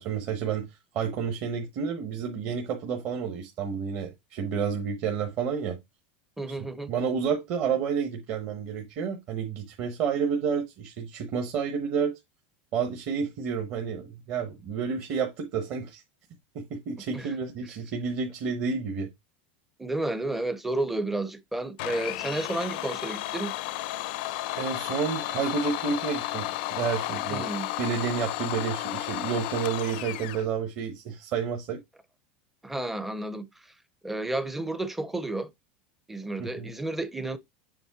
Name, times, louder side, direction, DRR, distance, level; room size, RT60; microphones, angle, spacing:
voice 1, 0.0-5.8 6.5-6.6 6.9-12.2 12.7-16.0 16.5-19.1 24.5-27.5 27.8-31.8 36.4-36.7, right 6 dB, 40° right, 1.0 m, -30 dB
voice 2, 6.4-6.9 17.1-17.3 19.8-23.5 27.3-27.7 32.6-33.7 34.0-35.5 36.1-37.4, right 2 dB, 5° right, 0.5 m, -31 dB
Domestic sounds home sounds, 21.8-30.5, left 16 dB, 60° left, 0.5 m, -33 dB
7.1 x 3.3 x 4.7 m
supercardioid pair, 165°, 6 cm